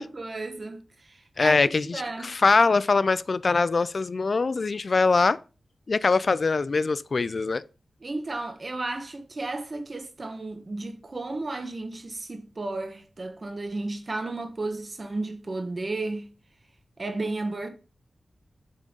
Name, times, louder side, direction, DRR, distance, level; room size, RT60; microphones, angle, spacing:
voice 1, 0.0-2.3 8.0-16.3 17.0-17.7, right 2 dB, 45° right, 1.5 m, -33 dB
voice 2, 1.4-5.4 5.9-7.6, left 4 dB, 60° left, 0.3 m, -23 dB
7.6 x 3.7 x 5.1 m
cardioid pair, 55°, 0 cm